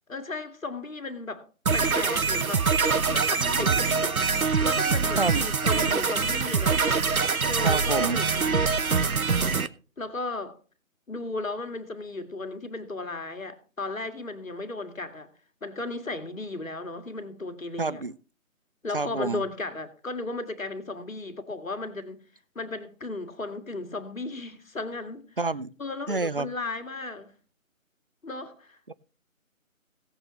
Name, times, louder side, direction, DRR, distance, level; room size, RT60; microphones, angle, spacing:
voice 1, 0.1-1.4 1.7-2.7 3.1-6.8 7.4-8.7 10.0-10.6 11.1-15.3 15.6-18.0 18.8-22.2 22.6-25.3 25.8-27.3 28.2-28.8, left 2 dB, 70° left, 2.1 m, -35 dB
sound 1, 1.7-9.7, right 5 dB, 85° right, 0.9 m, -24 dB
voice 2, 7.6-8.2 17.8-18.1 18.9-19.4 25.4-25.7 26.1-26.5 28.9-29.0, right 3 dB, 40° right, 0.5 m, -28 dB
17.0 x 8.9 x 3.1 m
figure-of-eight pair, 160°, 41 cm